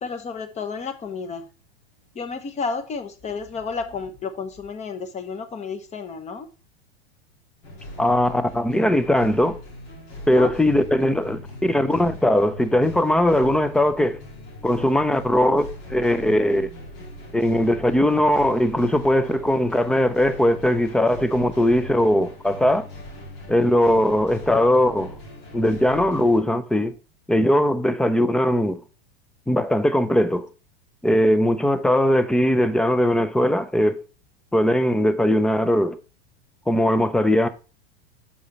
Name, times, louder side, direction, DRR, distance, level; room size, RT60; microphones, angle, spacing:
voice 1, 0.0-1.5 2.1-6.5 10.3-10.5, left 5 dB, 20° left, 0.9 m, -31 dB
sound 1, 7.6-26.4, left 1 dB, 60° left, 2.7 m, -40 dB
voice 2, 8.0-9.6 10.3-14.2 14.6-16.7 17.3-22.8 23.5-25.1 25.5-26.9 27.3-28.8 29.5-30.5 31.0-34.0 34.5-36.0 36.7-37.5, left 1 dB, ahead, 0.4 m, -20 dB
7.1 x 4.8 x 4.0 m
hypercardioid pair, 110°, 31 cm